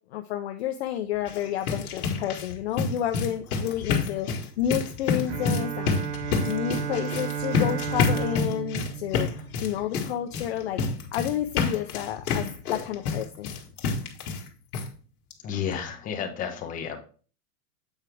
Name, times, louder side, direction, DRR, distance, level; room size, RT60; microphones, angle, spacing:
voice 1, 0.1-5.9 6.5-9.3 9.6-13.5, left 10 dB, 45° left, 6 dB, 0.5 m, -30 dB
sound 1, 1.1-14.5 14.7-14.9 15.3-15.4 15.7-15.8, left 5 dB, 65° left, 1.7 m, -29 dB
Bowed string instrument, 5.3-10.2, right 9 dB, 50° right, 0.5 m, -33 dB
voice 2, 15.4-17.0, left 8 dB, 15° left, 3 dB, 0.8 m, -31 dB
8.0 x 4.5 x 3.4 m, 0.39 s
supercardioid pair, 150°, 47 cm